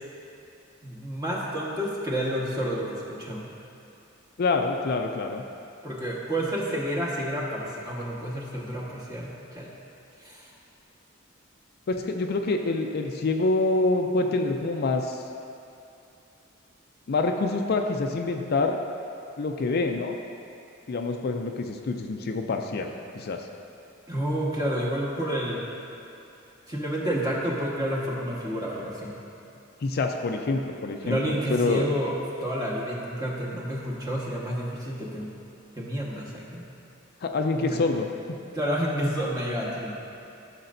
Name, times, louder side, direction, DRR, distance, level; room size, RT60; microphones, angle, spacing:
voice 1, 0.8-3.4 5.8-9.7 10.2-10.5 24.1-25.6 26.7-29.1 31.0-32.1 32.4-35.3 35.7-36.6 37.6-37.8 38.5-40.0, equal, 20° right, -5 dB, 1.4 m, -29 dB
voice 2, 4.4-5.4 11.9-15.2 17.1-18.8 19.4-20.2 20.9-23.5 29.8-31.9 37.2-38.4, left 3 dB, 50° left, 4 dB, 0.4 m, -26 dB
14.5 x 6.7 x 2.6 m, 2.7 s
head